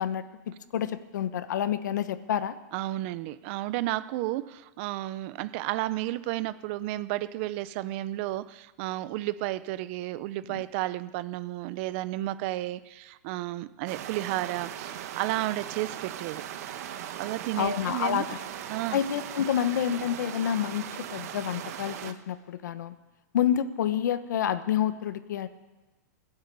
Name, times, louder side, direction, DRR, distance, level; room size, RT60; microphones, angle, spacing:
voice 1, 0.0-2.6 10.5-10.6 17.6-18.4 18.9-22.9 23.3-25.5, left 9 dB, 80° left, 12 dB, 1.1 m, -28 dB
voice 2, 2.7-16.4 17.2-18.3 18.7-19.0, right 16 dB, 40° right, 17 dB, 0.5 m, -32 dB
sound 1, 13.9-22.1, right 10 dB, 60° right, 1.1 m, -39 dB
20.0 x 8.0 x 8.1 m, 1.2 s
supercardioid pair, 155°, 10 cm